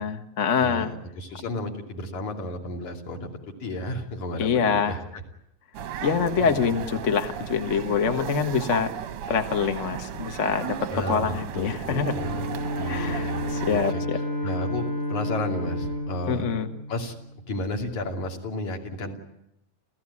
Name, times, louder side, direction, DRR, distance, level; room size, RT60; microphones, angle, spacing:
voice 1, 0.0-0.9 4.4-5.0 6.0-8.9 9.3-12.1 12.9-14.2 16.3-16.7, left 6 dB, 50° left, 6 dB, 0.8 m, -25 dB
voice 2, 0.6-3.3 3.6-5.2 5.8-6.0 6.4-6.7 10.9-12.5 12.8-13.4 13.7-14.0 14.4-16.4 16.9-17.1 17.5-19.2, left 1 dB, 65° left, 1 dB, 4.3 m, -33 dB
sound 1, 5.7-13.9, right 9 dB, 65° right, 1.5 m, -35 dB
Bowed string instrument, 11.8-17.5, left 1 dB, 85° left, 7.5 m, -31 dB
28.5 x 16.0 x 9.8 m, 0.84 s
omnidirectional pair, 3.7 m